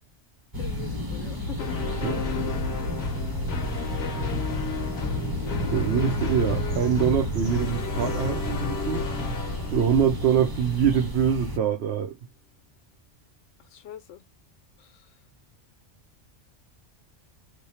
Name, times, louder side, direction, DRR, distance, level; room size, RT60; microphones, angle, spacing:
sound 1, 0.5-11.6, left 1 dB, 20° right, 0.8 m, -31 dB
voice 1, 0.6-1.7 13.6-14.2 14.8-15.2, left 8 dB, 85° left, 1.0 m, -43 dB
sound 2, 1.6-11.0, left 3 dB, 60° left, 1.1 m, -33 dB
voice 2, 5.7-9.1 9.7-12.2, right 8 dB, 65° right, 0.8 m, -24 dB
3.4 x 2.2 x 4.1 m
omnidirectional pair, 1.2 m